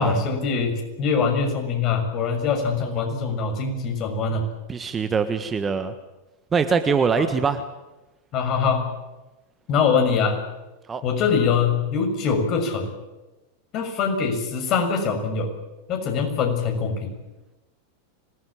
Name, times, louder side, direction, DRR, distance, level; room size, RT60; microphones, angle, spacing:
voice 1, 0.0-4.4 7.2-7.3 8.3-8.9 9.7-10.4 11.0-12.9 13.7-15.5 15.9-17.1, left 5 dB, 35° left, 4 dB, 6.8 m, -23 dB
voice 2, 4.7-5.9 6.5-7.6 10.9-11.0, right 5 dB, 20° right, 9 dB, 1.5 m, -23 dB
26.0 x 19.5 x 9.0 m, 1.1 s
figure-of-eight pair, 90°, 0 cm